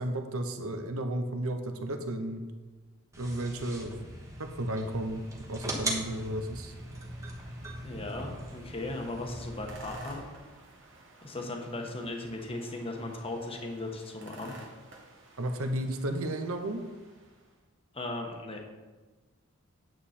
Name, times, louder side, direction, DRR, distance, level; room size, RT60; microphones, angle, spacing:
voice 1, 0.0-2.4 3.2-4.1 4.6-5.2 5.5-6.7 15.4-16.8, right 1 dB, 75° right, 6 dB, 1.0 m, -33 dB
sound 1, 3.1-10.1, right 1 dB, 15° right, 1.3 m, -40 dB
sound 2, 3.7-17.6, right 1 dB, 55° right, 1.3 m, -53 dB
voice 2, 7.8-10.2 11.2-14.5 17.9-18.6, left 2 dB, 25° left, 2 dB, 1.2 m, -37 dB
9.3 x 7.3 x 4.4 m, 1.3 s
head